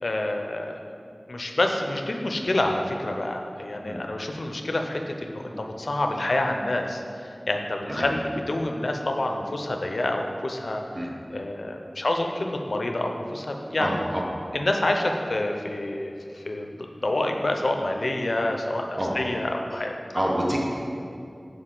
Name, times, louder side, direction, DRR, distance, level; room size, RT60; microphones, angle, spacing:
voice 1, 0.0-0.8 1.3-10.8 11.3-14.0 14.5-19.9, left 1 dB, 80° left, 3 dB, 0.5 m, -28 dB
voice 2, 13.8-14.3 19.0-19.1 20.1-20.6, equal, 40° right, -2 dB, 1.0 m, -27 dB
6.4 x 4.7 x 3.8 m, 2.5 s
wide cardioid pair, 40°, 0 cm